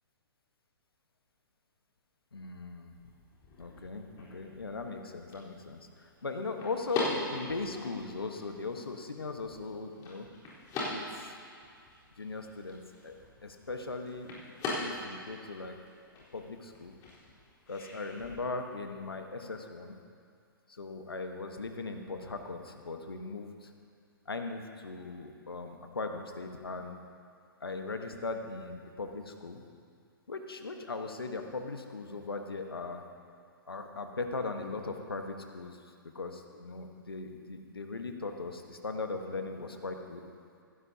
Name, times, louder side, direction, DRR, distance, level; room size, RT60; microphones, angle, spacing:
voice 1, 2.3-2.9 3.6-10.3 10.9-11.3 12.2-14.3 14.8-15.8 16.3-17.0 17.7-20.0 20.7-23.7 24.3-27.0 27.6-29.6 30.3-33.0 33.7-35.8 36.1-40.3, left 3 dB, 90° left, 5 dB, 1.3 m, -39 dB
sound 1, 2.9-18.4, left 2 dB, 30° left, 3.9 m, -42 dB
16.0 x 15.5 x 2.8 m, 2.3 s
hypercardioid pair, 125°, 12 cm